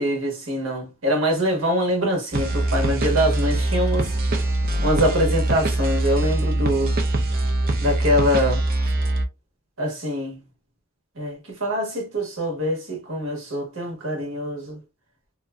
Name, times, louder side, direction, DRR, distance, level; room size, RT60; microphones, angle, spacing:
voice 1, 0.0-4.1 4.8-6.9 7.8-8.6 9.8-10.4 11.2-14.8, equal, 60° right, 1.1 m, -24 dB
sound 1, 2.3-9.3, right 2 dB, 40° right, 0.5 m, -23 dB
2.7 x 2.4 x 2.2 m
head